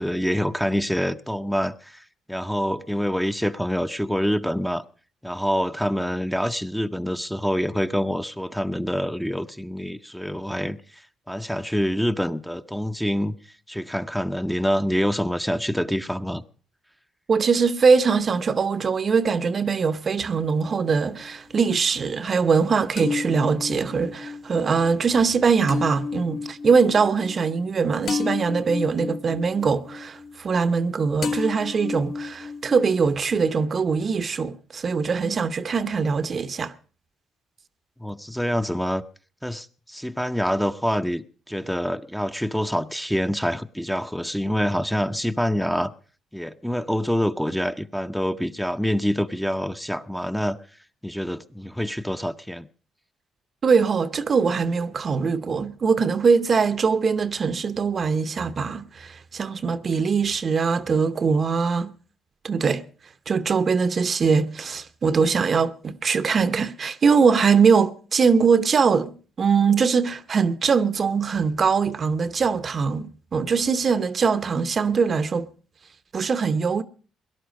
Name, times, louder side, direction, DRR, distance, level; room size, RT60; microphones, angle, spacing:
voice 1, 0.0-4.8 5.2-11.0 11.3-13.4 13.7-16.4 38.0-39.0 39.4-45.9 46.3-50.6 51.0-52.7, equal, ahead, 0.6 m, -26 dB
voice 2, 17.3-36.7 53.6-61.9 62.4-62.8 63.3-75.5 76.1-76.8, right 5 dB, 45° right, 0.7 m, -22 dB
sound 1, 20.4-21.3 23.0-30.9 31.2-33.3, left 5 dB, 60° left, 1.1 m, -33 dB
18.0 x 11.0 x 5.1 m
cardioid pair, 80°, 0 cm